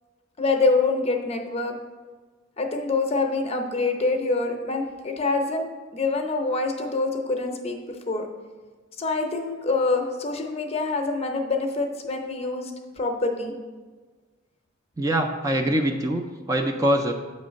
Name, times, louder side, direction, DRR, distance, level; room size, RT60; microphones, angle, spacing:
voice 1, 0.4-1.7 2.6-5.7 5.9-7.8 8.1-8.3 9.0-12.7 13.0-13.5, left 3 dB, 35° left, 3 dB, 0.7 m, -25 dB
voice 2, 15.0-17.1, right 1 dB, 20° right, 3 dB, 0.4 m, -24 dB
8.2 x 3.2 x 5.1 m, 1.4 s
head